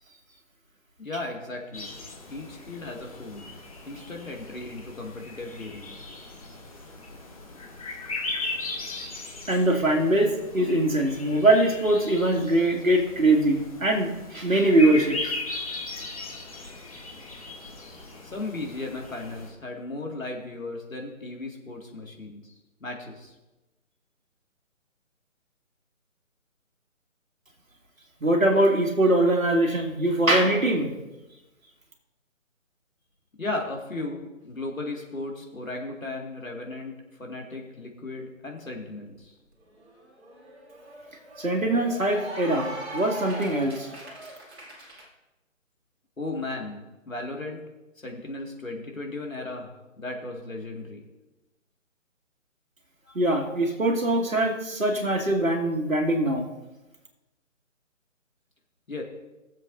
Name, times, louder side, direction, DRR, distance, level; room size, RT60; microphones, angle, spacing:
voice 1, 1.0-1.9 2.3-3.5 3.9-5.9 18.2-22.5 22.8-23.3 33.4-39.3 46.2-47.7 48.0-51.0 58.9-59.0, left 2 dB, 75° left, 0 dB, 2.2 m, -36 dB
sound 1, 1.7-19.5, left 2 dB, 25° left, 1.2 m, -38 dB
voice 2, 9.5-15.3 28.2-30.9 41.4-43.9 53.1-56.5, right 1 dB, 75° right, 1 dB, 2.2 m, -22 dB
Cheering / Applause, 39.2-39.3 39.6-45.1, right 2 dB, 50° right, 2.5 m, -41 dB
20.5 x 7.5 x 2.6 m, 1.1 s
figure-of-eight pair, 150°, 40 cm